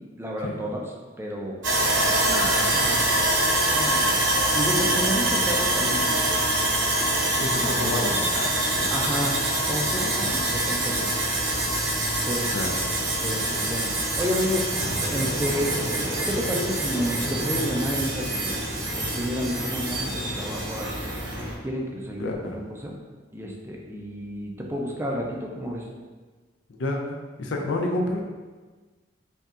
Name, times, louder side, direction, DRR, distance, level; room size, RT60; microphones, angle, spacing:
voice 1, 0.2-0.8 1.2-1.6 2.2-3.0 3.7-4.2 4.5-6.4 7.5-8.0 8.9-9.4 9.7-11.2 12.3-12.5 13.2-14.6 15.1-18.6 18.9-21.0 21.6-22.9 23.3-25.9, equal, 15° right, -1 dB, 0.4 m, -31 dB
Sawing, 1.6-21.5, right 1 dB, 70° right, 0.9 m, -25 dB
voice 2, 7.4-8.9 10.2-10.4 12.5-12.7 22.2-22.6 26.8-28.2, left 2 dB, 70° left, 1 dB, 0.5 m, -29 dB
sound 1, 10.2-13.3 14.1-22.7, equal, 90° left, 1.3 m, -38 dB
5.4 x 2.7 x 2.4 m, 1.3 s
head